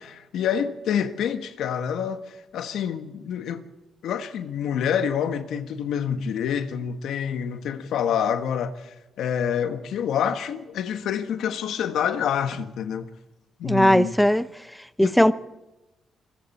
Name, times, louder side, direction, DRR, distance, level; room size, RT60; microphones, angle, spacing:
voice 1, 0.3-3.6 4.0-13.1 13.6-14.1 15.0-15.3, left 8 dB, 75° left, 1.5 m, -27 dB
voice 2, 13.6-14.5 15.0-15.3, equal, 5° left, 0.6 m, -18 dB
27.0 x 22.0 x 4.5 m
cardioid pair, 90°, 0 cm